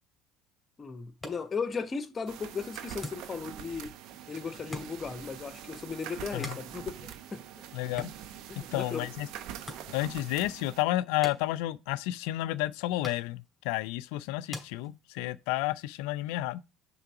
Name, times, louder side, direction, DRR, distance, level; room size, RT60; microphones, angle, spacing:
voice 1, 0.8-3.9 4.3-7.6 8.5-9.0, left 5 dB, 35° left, 1.0 m, -36 dB
sound 1, 1.0-15.5, left 2 dB, 15° left, 2.7 m, -48 dB
sound 2, 2.3-10.8, right 10 dB, 65° right, 0.7 m, -44 dB
voice 2, 7.7-8.1 8.7-9.3 9.9-16.6, left 16 dB, 70° left, 0.3 m, -31 dB
5.8 x 3.7 x 5.8 m
hypercardioid pair, 65°, 0 cm